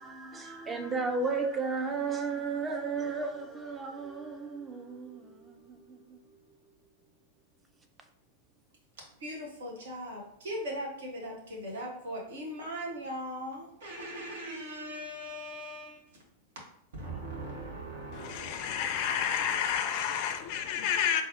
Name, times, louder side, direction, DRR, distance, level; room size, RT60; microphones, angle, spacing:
voice 1, 0.0-6.2, right 4 dB, 15° right, 0.5 m, -34 dB
voice 2, 9.2-16.2 16.9-19.2, equal, 60° right, 0.9 m, -40 dB
voice 3, 18.1-21.2, left 8 dB, 45° left, 0.4 m, -30 dB
3.9 x 2.4 x 2.6 m
figure-of-eight pair, 90°, 0 cm